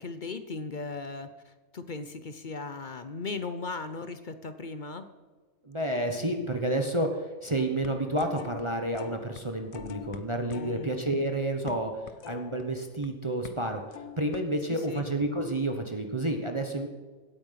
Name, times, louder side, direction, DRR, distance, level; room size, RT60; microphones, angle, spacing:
voice 1, 0.0-5.1 10.6-10.9 14.7-15.1, left 3 dB, 40° left, 10 dB, 0.8 m, -37 dB
voice 2, 5.6-12.0 12.3-13.8 14.2-16.9, right 1 dB, 20° right, 4 dB, 1.1 m, -30 dB
sound 1, 7.6-8.6 8.9-9.4 9.7-13.1 13.4-13.6 13.9-14.4, left 8 dB, 80° left, 1.3 m, -45 dB
17.5 x 8.7 x 5.8 m, 1.4 s
omnidirectional pair, 1.5 m